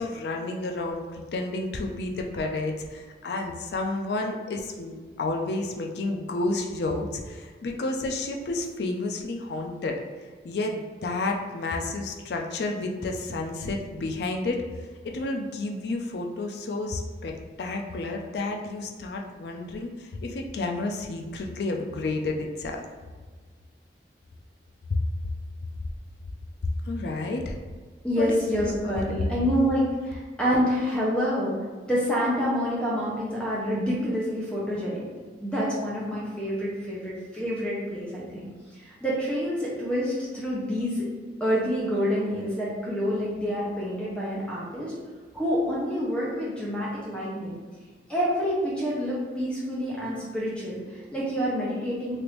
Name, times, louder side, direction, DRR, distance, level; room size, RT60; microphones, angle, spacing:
voice 1, 0.0-10.0 10.4-14.6 15.0-22.8 24.9-25.0 26.9-27.6 28.2-28.9, left 2 dB, 70° left, 2 dB, 0.4 m, -31 dB
voice 2, 28.0-31.5 31.8-35.1 35.4-41.1 41.4-44.9 45.3-47.6 48.1-52.2, equal, 5° left, -7 dB, 0.6 m, -27 dB
3.3 x 2.5 x 3.0 m, 1.4 s
head